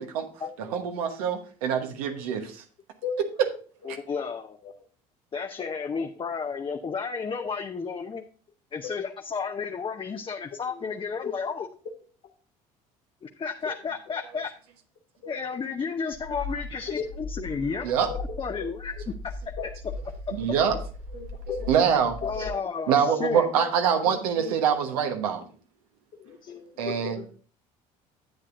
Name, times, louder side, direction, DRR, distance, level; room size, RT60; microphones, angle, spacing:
voice 1, 0.6-2.6 3.9-4.0 17.8-18.1 20.3-20.8 21.1-21.3 21.7-22.2 22.9-25.5 26.8-27.2, right 7 dB, 80° right, 6 dB, 1.2 m, -25 dB
voice 2, 3.8-4.6 5.3-8.2 8.7-11.7 13.2-14.5 15.3-17.9 18.1-19.1 22.2-23.5, left 5 dB, 25° left, 4 dB, 0.7 m, -32 dB
sound 1, 16.1-22.5, left 2 dB, 85° left, 2.4 m, -38 dB
voice 3, 21.1-21.7 22.3-22.6 23.1-23.2 24.0-24.5 26.2-27.3, left 6 dB, 50° left, -2 dB, 1.2 m, -35 dB
10.5 x 8.3 x 2.5 m, 0.41 s
hypercardioid pair, 65°, 19 cm